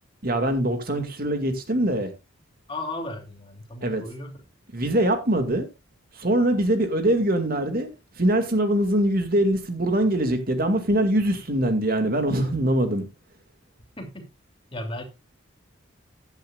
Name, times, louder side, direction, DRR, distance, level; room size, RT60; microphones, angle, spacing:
voice 1, 0.2-2.1 3.8-4.0 4.7-5.7 6.1-7.9 8.1-13.0, right 1 dB, 45° right, 2.2 m, -23 dB
voice 2, 2.7-4.3 14.0-14.3 14.7-15.0, left 2 dB, 25° left, 2.9 m, -35 dB
15.0 x 10.5 x 2.4 m
head